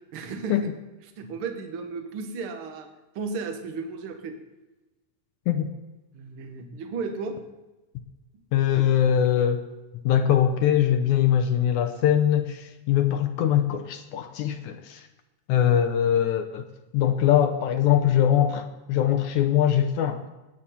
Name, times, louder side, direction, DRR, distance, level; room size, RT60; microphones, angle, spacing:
voice 1, 0.1-0.7 1.2-2.9 3.1-4.4 6.1-7.4, right 4 dB, 55° right, 6 dB, 1.7 m, -34 dB
voice 2, 8.5-9.6 10.1-15.1 15.5-16.7 16.9-20.2, left 10 dB, 75° left, 6 dB, 2.0 m, -22 dB
19.5 x 9.1 x 4.3 m, 1.1 s
omnidirectional pair, 3.9 m